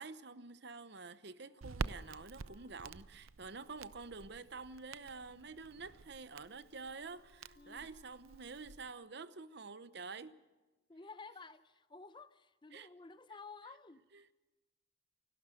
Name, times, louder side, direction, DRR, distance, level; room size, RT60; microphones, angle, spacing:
voice 1, 0.0-10.4 12.7-12.9 14.1-14.3, right 4 dB, 55° right, 0.9 m, -48 dB
Wind instrument woodwind instrument, 1.4-5.7 5.9-6.1 6.4-8.7, left 3 dB, 55° left, 2.4 m, -72 dB
Crackle, 1.6-8.9, right 4 dB, 90° right, 0.6 m, -48 dB
voice 2, 7.6-7.9 10.9-14.0, left 4 dB, 25° left, 0.7 m, -53 dB
28.5 x 12.0 x 7.7 m
head